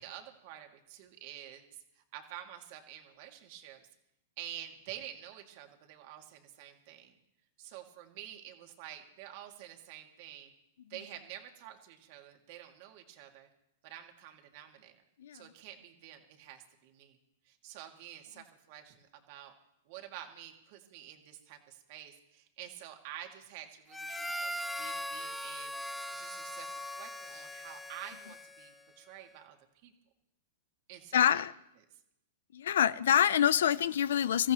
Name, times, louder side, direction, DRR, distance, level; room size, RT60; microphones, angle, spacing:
voice 1, 0.0-1.6 2.1-3.8 4.4-7.1 7.6-10.5 10.9-13.5 13.8-14.9 15.3-17.2 17.4-19.5 19.9-25.7 26.2-29.5 29.8-29.9 30.9-31.4, right 11 dB, 50° right, 3 dB, 2.2 m, -49 dB
Harmonica, 23.9-28.9, left 1 dB, 5° left, 1.2 m, -40 dB
voice 2, 31.1-31.5 32.5-34.5, left 9 dB, 80° left, 18 dB, 0.5 m, -26 dB
25.0 x 14.5 x 3.1 m, 0.83 s
hypercardioid pair, 135°, 0 cm